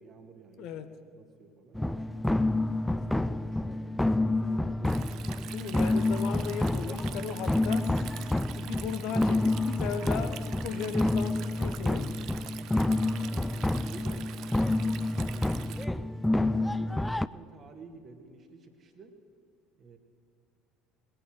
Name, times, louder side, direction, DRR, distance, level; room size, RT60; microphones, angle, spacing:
voice 1, 0.0-0.7 1.1-2.4 2.8-5.3 12.6-14.3 15.1-19.1 19.8-20.0, right 4 dB, 35° right, 6 dB, 1.8 m, -50 dB
voice 2, 0.6-0.9 5.5-7.9 8.6-12.2, left 8 dB, 55° left, 9 dB, 0.9 m, -37 dB
sound 1, 1.8-17.3, left 2 dB, 5° left, 0.4 m, -28 dB
Stream, 4.8-15.8, right 12 dB, 55° right, 0.6 m, -46 dB
sound 2, 7.8-8.9, left 4 dB, 30° left, 2.2 m, -61 dB
20.5 x 9.0 x 6.4 m, 2.3 s
figure-of-eight pair, 60°, 0 cm